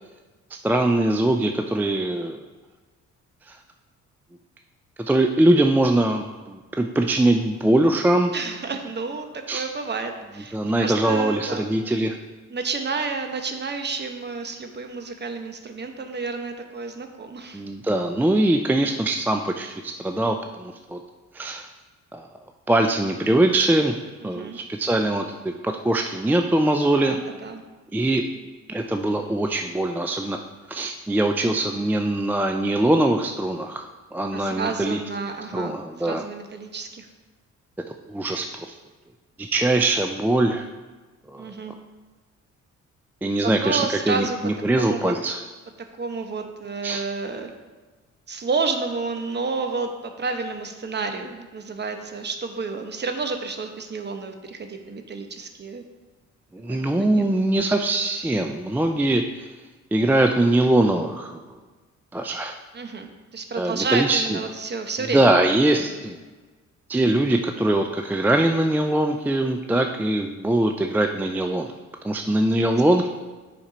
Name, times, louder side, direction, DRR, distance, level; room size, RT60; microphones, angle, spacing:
voice 1, 0.6-2.4 3.5-3.6 5.1-8.3 9.5-9.7 10.5-12.2 17.5-21.0 21.3-21.7 22.1-22.3 22.7-24.0 24.2-27.2 27.9-28.2 28.7-30.4 30.7-33.8 34.1-35.0 35.5-36.2 38.1-38.7 39.4-40.7 41.3-41.5 43.2-45.4 46.8-47.0 56.5-59.5 59.9-61.4 62.1-62.6 63.6-64.4 65.0-66.2 66.9-71.7 72.0-73.1, right 1 dB, 5° right, 4 dB, 0.4 m, -22 dB
voice 2, 8.3-11.6 12.5-17.6 24.2-24.6 27.0-27.6 28.3-28.5 34.3-35.8 36.0-37.1 41.4-41.7 43.4-44.4 44.8-45.1 46.0-47.5 48.3-55.8 56.9-57.3 62.7-65.5 66.0-66.1 72.6-72.8, right 4 dB, 35° right, 6 dB, 0.9 m, -30 dB
7.1 x 4.4 x 5.1 m, 1.3 s
cardioid pair, 90°, 30 cm